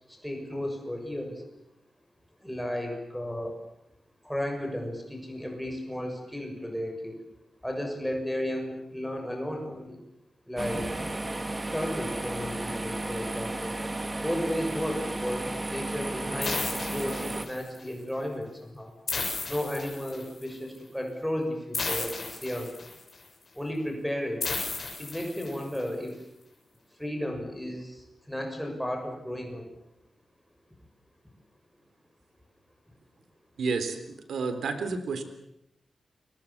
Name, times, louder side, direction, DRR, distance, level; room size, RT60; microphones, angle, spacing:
voice 1, 0.1-1.4 2.4-3.6 4.2-7.2 7.6-10.0 10.5-10.8 11.7-13.7 14.2-18.9 19.5-22.7 23.5-24.4 25.0-26.2 27.0-29.6, equal, ahead, 2 dB, 6.6 m, -34 dB
sound 1, 10.6-17.5, right 2 dB, 15° right, 2.2 m, -33 dB
sound 2, 16.4-17.8 19.1-20.4 21.7-23.1 24.4-25.8, left 3 dB, 35° left, 7.1 m, -34 dB
voice 2, 33.6-35.2, right 4 dB, 85° right, 9 dB, 3.6 m, -30 dB
29.0 x 24.0 x 7.4 m, 0.82 s
wide cardioid pair, 160°, 0 cm